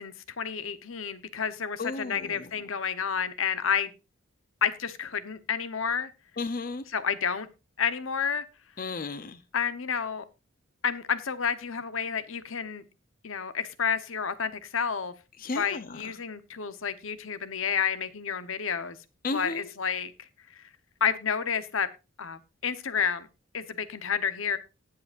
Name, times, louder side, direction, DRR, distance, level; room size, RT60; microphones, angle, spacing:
voice 1, 0.0-3.9 4.6-6.1 6.9-7.5 7.8-8.4 9.5-10.2 10.8-12.8 13.2-15.1 15.5-19.0 19.3-20.1 20.6-20.7 21.0-21.9 22.2-23.3 23.5-24.6, left 7 dB, 75° left, 13 dB, 1.0 m, -30 dB
voice 2, 1.8-2.2 6.4-6.8 8.8-9.4 15.4-15.8 19.2-19.6, left 3 dB, 40° left, 12 dB, 0.6 m, -33 dB
19.0 x 7.7 x 2.5 m, 0.27 s
head